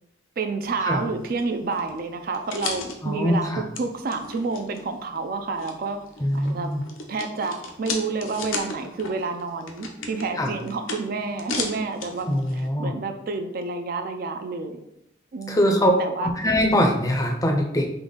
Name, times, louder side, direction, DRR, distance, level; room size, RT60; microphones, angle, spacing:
voice 1, 0.4-6.0 6.3-6.7 7.1-14.8 15.3-16.3, right 3 dB, 50° right, 7 dB, 0.4 m, -29 dB
sound 1, 0.6-12.7, left 4 dB, 90° left, 0.7 m, -37 dB
voice 2, 3.0-3.6 6.2-6.8 10.4-10.5 12.3-12.9 15.5-15.9 16.2-17.9, equal, 15° left, 3 dB, 0.5 m, -22 dB
3.9 x 3.4 x 3.7 m, 0.81 s
head